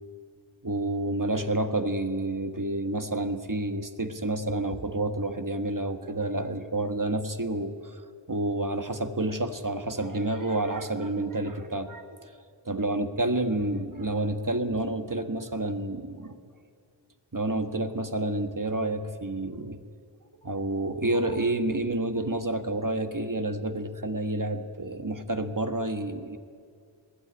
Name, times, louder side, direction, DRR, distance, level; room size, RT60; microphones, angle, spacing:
voice 1, 0.6-8.0 8.3-12.3 12.6-16.4 17.3-19.8 20.4-26.4, right 2 dB, 40° right, 7 dB, 1.5 m, -29 dB
21.0 x 15.5 x 9.8 m, 2.2 s
wide cardioid pair, 45°, 49 cm